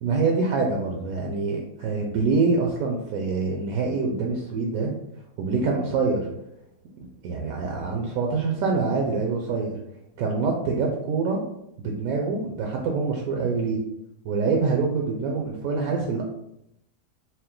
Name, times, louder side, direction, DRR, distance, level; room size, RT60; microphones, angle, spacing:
voice 1, 0.0-4.9 5.4-6.3 7.0-9.8 10.2-11.4 11.8-13.8 14.2-16.2, right 4 dB, 70° right, 1 dB, 1.0 m, -25 dB
4.3 x 2.1 x 3.8 m, 0.80 s
omnidirectional pair, 1.8 m